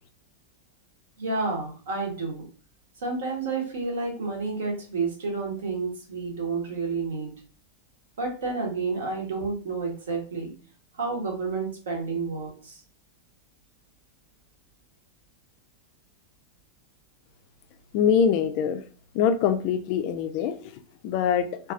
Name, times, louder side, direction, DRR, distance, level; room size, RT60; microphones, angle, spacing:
voice 1, 1.2-2.4 3.0-7.3 8.2-10.5 10.9-12.8, right 4 dB, 65° right, 2 dB, 0.9 m, -30 dB
voice 2, 17.9-18.8 19.1-21.7, left 7 dB, 45° left, 9 dB, 0.3 m, -24 dB
4.0 x 2.3 x 2.4 m, 0.39 s
figure-of-eight pair, 90°, 0 cm